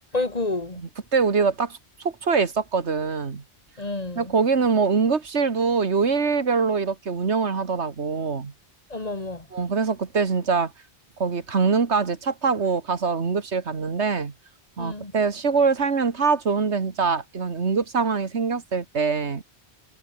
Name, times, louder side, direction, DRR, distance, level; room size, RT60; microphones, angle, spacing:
voice 1, 0.1-0.8 3.8-4.3 8.9-9.5 14.8-15.1, left 2 dB, 35° left, 2.5 m, -29 dB
voice 2, 0.8-3.4 4.2-8.5 9.5-10.7 11.2-14.3 14.8-19.4, right 5 dB, 85° right, 2.1 m, -23 dB
omnidirectional pair, 1.1 m